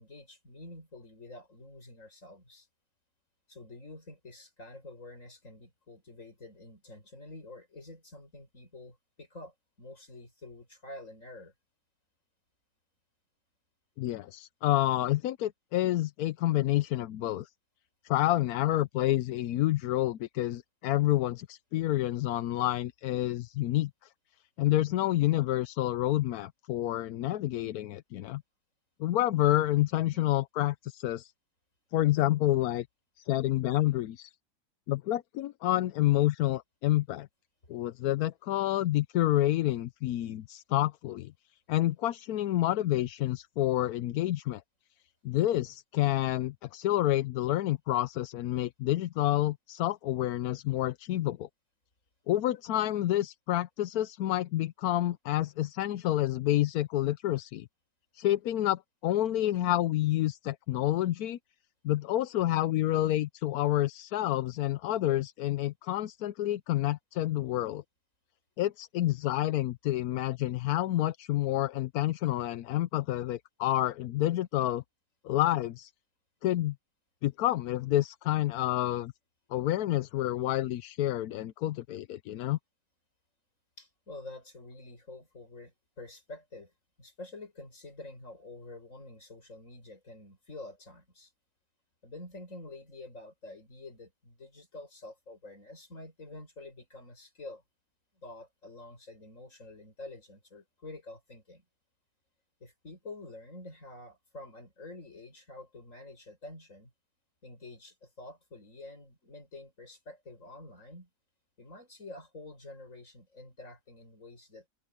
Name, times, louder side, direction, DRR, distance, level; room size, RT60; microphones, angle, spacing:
voice 1, 0.0-2.7 3.5-11.5 21.8-21.9 30.1-30.3 83.8-86.7 87.0-91.3 92.0-97.6 98.1-101.6 102.6-106.9 107.4-111.1 111.6-114.7, left 2 dB, 50° left, 6.8 m, -48 dB
voice 2, 14.0-17.5 18.0-24.1 24.6-28.4 29.0-31.3 31.9-32.9 33.2-34.3 34.9-37.3 37.7-41.3 41.7-44.6 45.2-51.5 52.3-57.7 58.1-61.4 61.8-67.8 68.6-74.8 75.2-75.9 76.4-76.7 77.2-79.1 79.5-82.6, left 14 dB, 75° left, 1.1 m, -28 dB
open air
omnidirectional pair, 1.7 m